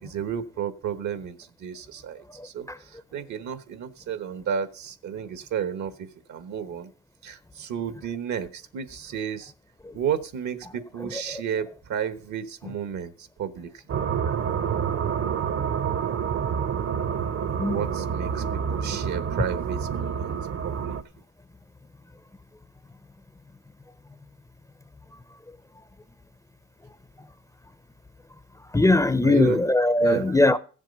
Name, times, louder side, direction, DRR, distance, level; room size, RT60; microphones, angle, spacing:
voice 1, 0.0-6.9 7.2-9.5 9.9-13.8 17.6-20.4 20.6-21.0 29.2-29.6 30.0-30.6, right 8 dB, 70° right, 1.2 m, -32 dB
sound 1, 13.9-21.0, right 7 dB, 50° right, 0.9 m, -28 dB
voice 2, 28.7-30.6, left 2 dB, 10° left, 0.5 m, -20 dB
14.5 x 7.5 x 5.3 m
cardioid pair, 90°, 30 cm